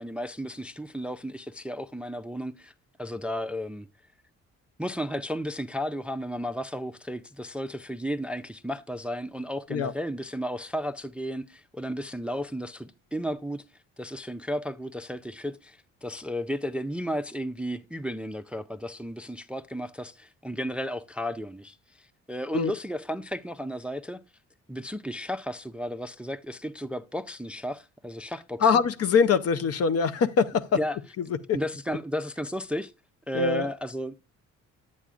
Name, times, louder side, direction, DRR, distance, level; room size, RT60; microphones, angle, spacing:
voice 1, 0.0-2.7 3.0-3.9 4.8-13.6 14.0-24.2 24.7-28.7 30.7-31.0 31.5-32.9 33.3-34.1, equal, 5° right, 0.4 m, -33 dB
voice 2, 28.6-30.8 31.5-31.6 33.3-33.7, left 5 dB, 55° left, 0.6 m, -23 dB
9.9 x 8.3 x 2.4 m
cardioid pair, 90°, 30 cm